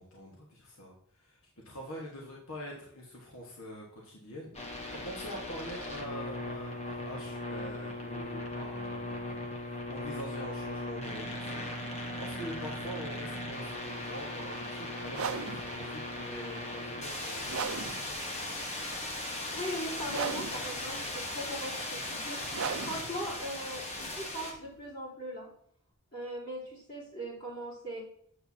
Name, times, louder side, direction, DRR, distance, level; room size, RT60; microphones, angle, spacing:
voice 1, 0.0-1.4 1.6-18.0, equal, 65° left, -2 dB, 1.4 m, -45 dB
sound 1, 4.5-24.5, left 1 dB, 30° left, 1.1 m, -38 dB
sound 2, 15.1-24.9, right 6 dB, 65° right, 0.5 m, -40 dB
voice 2, 19.5-22.4 22.8-25.5 26.1-28.0, equal, 45° left, -9 dB, 3.3 m, -39 dB
8.4 x 7.8 x 2.8 m, 0.67 s
head